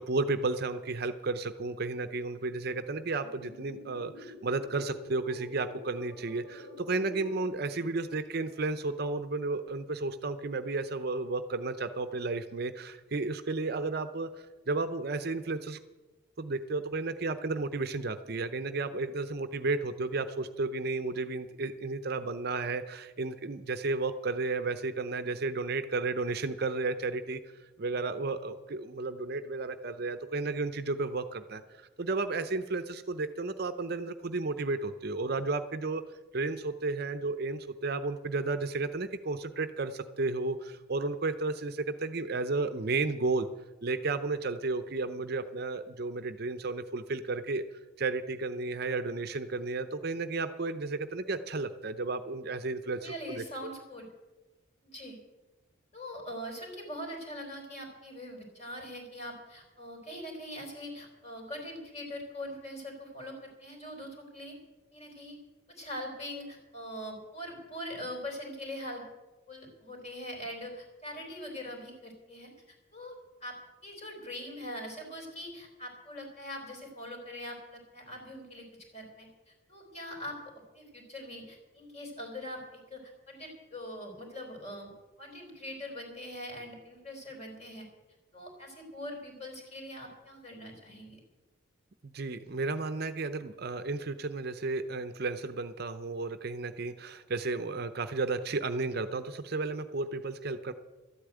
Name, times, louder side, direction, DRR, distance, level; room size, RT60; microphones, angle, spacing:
voice 1, 0.0-15.8 16.4-27.4 27.8-36.0 36.3-43.5 43.8-47.6 48.0-53.4 92.0-100.7, right 3 dB, 50° right, 10 dB, 0.6 m, -33 dB
sound 1, 3.1-7.5, left 2 dB, 80° left, 6.0 m, -48 dB
voice 2, 53.0-54.1 54.8-55.2 55.9-64.5 64.9-65.4 65.7-69.0 69.5-73.2 73.4-78.6 78.9-80.4 80.7-84.9 85.2-87.9 88.3-91.2, left 1 dB, 30° left, 1 dB, 4.0 m, -42 dB
13.0 x 8.5 x 9.1 m, 1.2 s
head